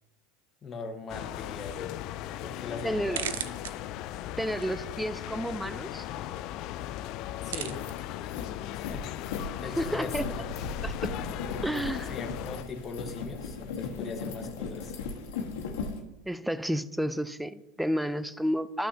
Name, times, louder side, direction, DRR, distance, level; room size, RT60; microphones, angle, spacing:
voice 1, 0.6-1.9 2.4-3.5 7.4-7.9 8.7-9.1 9.6-10.5 11.5-15.0, left 3 dB, 30° left, 1.3 m, -40 dB
sound 1, 1.1-12.6, left 13 dB, 55° left, 0.4 m, -38 dB
sound 2, 1.3-12.5, right 10 dB, 80° right, 0.5 m, -45 dB
voice 2, 2.8-3.2 4.4-6.0 9.8-10.3 10.8-11.2 11.6-12.1 16.3-18.9, equal, 5° right, 0.5 m, -31 dB
sound 3, 7.7-16.0, left 4 dB, 70° left, 1.3 m, -37 dB
13.0 x 6.2 x 2.8 m
hypercardioid pair, 90°, 0 cm